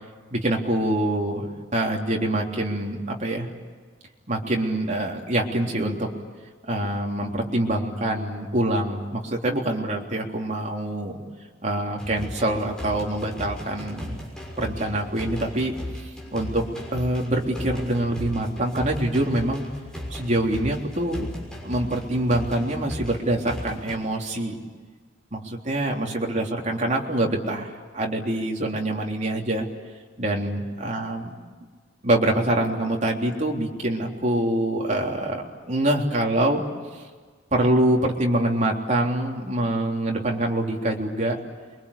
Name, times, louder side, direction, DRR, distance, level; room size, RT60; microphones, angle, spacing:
voice 1, 0.3-3.5 4.3-6.1 6.6-11.2 11.6-14.3 14.6-15.7 16.3-16.6 16.9-19.7 20.1-21.3 21.6-24.6 25.3-29.7 30.2-31.3 32.0-36.6 36.9-37.0 37.5-41.4, right 1 dB, 40° right, 0 dB, 3.5 m, -25 dB
sound 1, 12.0-24.0, left 1 dB, 5° left, 6.2 m, -36 dB
28.5 x 24.0 x 8.6 m, 1.5 s
head